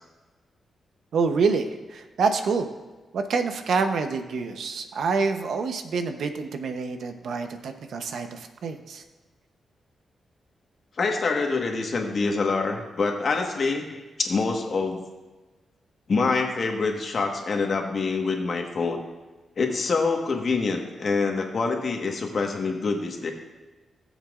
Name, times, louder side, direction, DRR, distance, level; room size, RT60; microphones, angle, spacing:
voice 1, 1.1-2.7 3.1-9.0, right 4 dB, 75° right, 7 dB, 0.9 m, -27 dB
voice 2, 11.0-15.0 16.1-19.0 19.6-23.3, left 4 dB, 50° left, 2 dB, 1.4 m, -26 dB
17.5 x 7.2 x 2.5 m, 1.3 s
cardioid pair, 100°, 0 cm